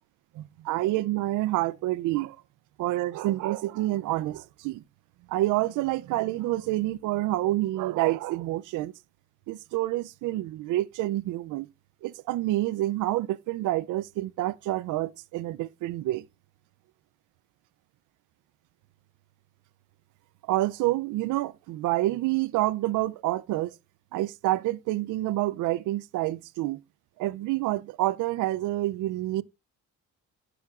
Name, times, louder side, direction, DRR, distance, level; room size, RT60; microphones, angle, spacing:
voice 1, 0.3-2.4 2.8-4.8 5.3-8.9 9.5-11.7 12.0-16.2 20.5-23.8 24.1-26.8 27.2-29.4, right 16 dB, 85° right, 0.5 m, -28 dB
15.5 x 5.9 x 2.4 m
cardioid pair, 90°, 30 cm